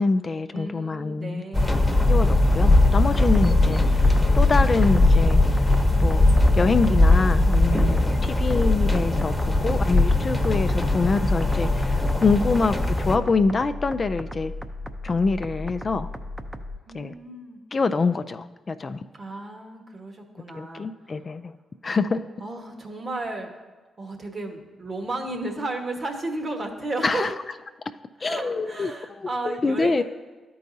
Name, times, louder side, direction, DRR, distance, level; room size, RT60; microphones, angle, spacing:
voice 1, 0.0-1.4 2.1-4.1 4.3-5.4 6.0-6.3 6.5-14.5 15.0-16.1 16.9-17.1 17.7-19.0 20.5-21.5 21.8-22.2 27.0-27.3 28.2-30.0, left 4 dB, 45° left, 10 dB, 0.4 m, -25 dB
voice 2, 0.5-1.8 16.9-17.6 19.2-20.9 22.4-23.5 24.0-27.3 28.2-30.0, right 2 dB, 50° right, 3 dB, 1.3 m, -33 dB
sound 1, 1.5-13.2, left 2 dB, 10° left, 1.0 m, -20 dB
sound 2, 3.1-16.8, left 2 dB, 15° right, 0.7 m, -36 dB
13.0 x 4.7 x 2.7 m, 1.3 s
hypercardioid pair, 45°, 0 cm